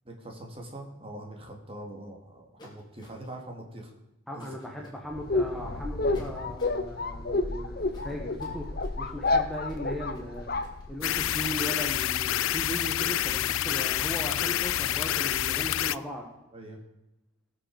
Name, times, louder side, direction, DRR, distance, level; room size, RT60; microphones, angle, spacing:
voice 1, 0.0-3.9 4.3-4.5 16.5-16.8, right 1 dB, 25° right, 1 dB, 2.3 m, -43 dB
sound 1, 2.6-3.4 4.4-5.0 6.1-6.8 7.9-15.6, left 1 dB, 20° left, 2.8 m, -53 dB
voice 2, 4.3-10.5 10.9-16.3, equal, ahead, -1 dB, 1.2 m, -38 dB
sound 2, 5.1-11.4, left 3 dB, 45° left, 0.8 m, -30 dB
sound 3, 11.0-16.0, left 12 dB, 80° left, 0.4 m, -28 dB
18.5 x 6.6 x 4.9 m, 0.94 s
head